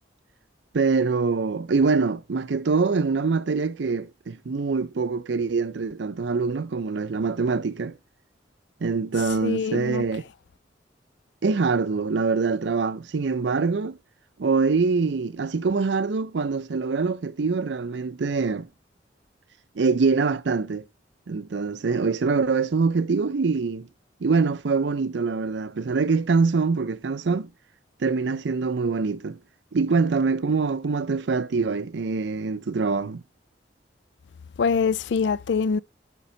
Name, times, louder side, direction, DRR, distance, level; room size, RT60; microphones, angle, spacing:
voice 1, 0.7-8.0 8.8-10.2 11.4-14.0 14.4-18.7 19.8-20.9 21.3-23.9 24.2-27.5 28.0-29.4 29.7-33.2, right 4 dB, 65° right, 0.5 m, -24 dB
voice 2, 9.4-10.0 34.6-35.8, left 5 dB, 65° left, 0.4 m, -24 dB
6.7 x 5.3 x 4.3 m
head